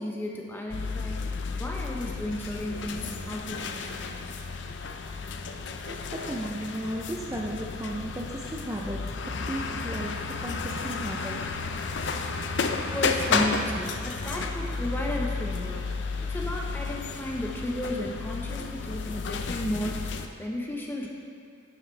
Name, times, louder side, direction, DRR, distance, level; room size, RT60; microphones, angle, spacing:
voice 1, 0.0-4.2 12.7-21.1, left 1 dB, 10° left, -1 dB, 0.9 m, -34 dB
sound 1, 0.7-20.3, left 4 dB, 65° left, 0.5 m, -32 dB
voice 2, 5.8-11.5 12.0-12.1 13.3-13.4 14.3-14.5 18.6-18.7, right 1 dB, 15° right, -2 dB, 0.5 m, -35 dB
11.0 x 8.0 x 3.3 m, 2.3 s
head